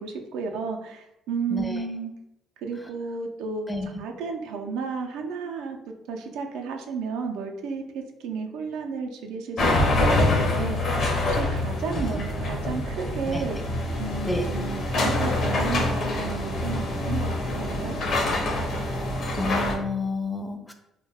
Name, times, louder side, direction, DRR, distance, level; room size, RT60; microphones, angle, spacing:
voice 1, 0.0-2.1 2.6-3.7 4.0-13.6 14.0-18.0, right 5 dB, 90° right, 3 dB, 0.3 m, -33 dB
voice 2, 1.5-1.8 3.7-3.9 11.9-12.0 13.3-13.5 14.3-14.4 19.4-20.7, left 2 dB, 10° left, 4 dB, 0.4 m, -30 dB
sound 1, 9.6-19.7, left 1 dB, 60° left, 0.6 m, -25 dB
2.2 x 2.1 x 3.3 m, 0.88 s
cardioid pair, 95°, 0 cm